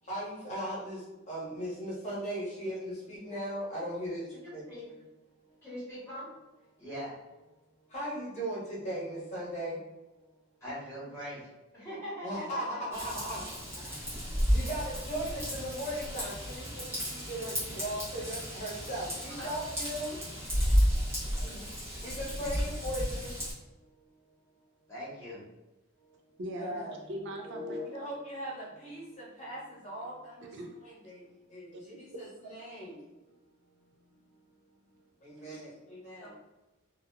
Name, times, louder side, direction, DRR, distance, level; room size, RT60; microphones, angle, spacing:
voice 1, 0.0-4.3 4.5-4.9 5.4-5.6 7.9-9.8 12.2-20.2 20.5-23.4 23.7-24.1 25.9-26.3 26.6-27.0 27.8-33.3 33.8-34.4 35.2-36.3, equal, 35° left, -7 dB, 1.0 m, -39 dB
voice 2, 4.4-4.8 5.6-6.3 6.8-7.1 10.6-12.8 19.4-19.5 24.9-25.4 36.2-36.3, equal, 15° left, -9 dB, 1.2 m, -41 dB
Raindrop / Vehicle horn car horn honking / Trickle dribble, 12.9-23.5, equal, 10° right, 0.9 m, -32 dB
voice 3, 26.4-26.8 27.1-28.1 30.4-30.7 31.7-32.0 35.4-35.6, equal, 55° right, 2 dB, 0.3 m, -40 dB
2.7 x 2.3 x 2.3 m, 1.0 s
head